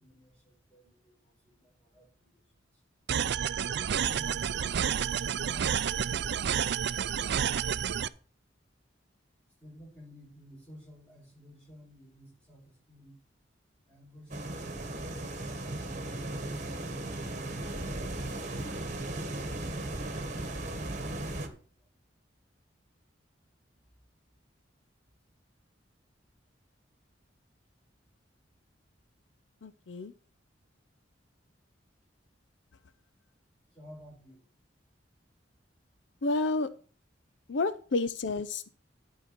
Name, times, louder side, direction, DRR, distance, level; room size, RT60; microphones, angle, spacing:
voice 1, 0.0-2.4 3.7-8.1 9.6-13.2 13.9-15.1 33.7-34.4, equal, 5° left, -3 dB, 6.3 m, -55 dB
sound 1, 3.1-8.1, right 8 dB, 60° right, 0.4 m, -30 dB
sound 2, 14.3-21.5, right 2 dB, 40° right, 1.5 m, -36 dB
voice 2, 29.6-30.1 36.2-36.7 37.5-38.7, left 3 dB, 80° left, 13 dB, 0.6 m, -30 dB
12.0 x 4.9 x 5.8 m, 0.40 s
head